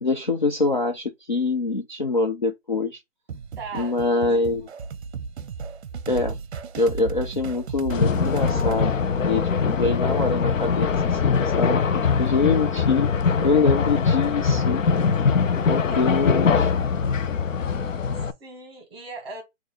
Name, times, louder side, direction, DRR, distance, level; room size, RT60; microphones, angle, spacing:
voice 1, 0.0-3.0 3.7-4.7 6.1-6.4 6.8-8.9 9.3-13.1 13.4-14.8 15.6-16.7, left 3 dB, 40° left, 0.4 m, -24 dB
sound 1, 3.3-8.9, right 5 dB, 55° right, 0.6 m, -34 dB
voice 2, 3.6-4.7 15.7-16.3 18.2-19.4, right 4 dB, 20° right, 1.5 m, -40 dB
sound 2, 7.9-18.3, left 5 dB, 75° left, 0.8 m, -22 dB
4.2 x 2.7 x 4.7 m
hypercardioid pair, 175°, 39 cm